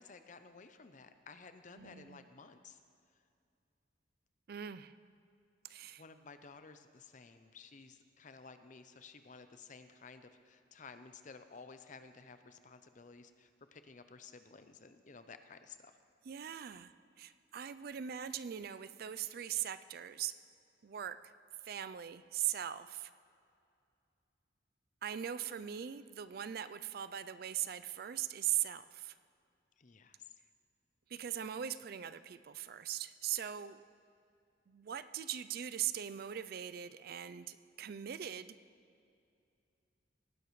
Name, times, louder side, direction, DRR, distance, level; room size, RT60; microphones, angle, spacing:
voice 1, 0.0-2.8 6.0-15.9 29.8-30.3, left 4 dB, 45° left, 9 dB, 0.6 m, -54 dB
voice 2, 1.8-2.3 4.5-4.9 5.6-6.0 16.2-16.9 17.2-20.3 20.8-21.3 21.6-23.1 25.0-29.1 31.1-33.8 34.7-38.6, right 10 dB, 55° right, 14 dB, 0.4 m, -40 dB
18.5 x 10.5 x 3.2 m, 2.5 s
head